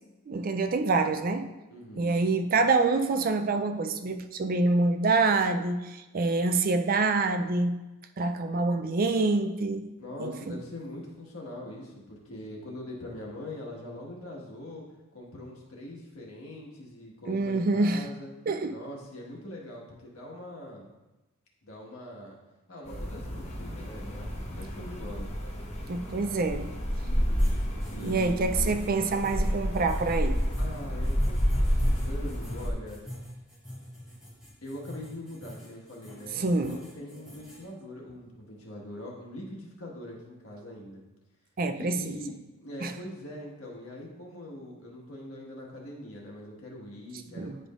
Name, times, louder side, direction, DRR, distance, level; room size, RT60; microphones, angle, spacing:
voice 1, 0.3-1.5 2.0-7.7 8.2-9.9 10.2-10.6 17.3-18.0 18.5-18.7 25.9-26.7 28.0-30.4 36.3-36.8 41.6-42.2 42.8-42.9 47.4-47.6, right 3 dB, 40° right, 8 dB, 0.4 m, -26 dB
voice 2, 1.7-2.3 10.0-14.8 15.1-18.3 18.7-20.9 21.6-22.4 22.7-25.3 27.0-27.5 27.9-28.7 30.6-33.0 34.6-41.0 41.7-42.3 42.6-47.5, left 1 dB, 80° left, -2 dB, 1.6 m, -42 dB
sound 1, 22.8-32.7, equal, 30° left, 1.0 m, -29 dB
sound 2, 27.4-37.6, equal, 5° right, 2.2 m, -45 dB
9.8 x 5.0 x 2.5 m, 1.1 s
head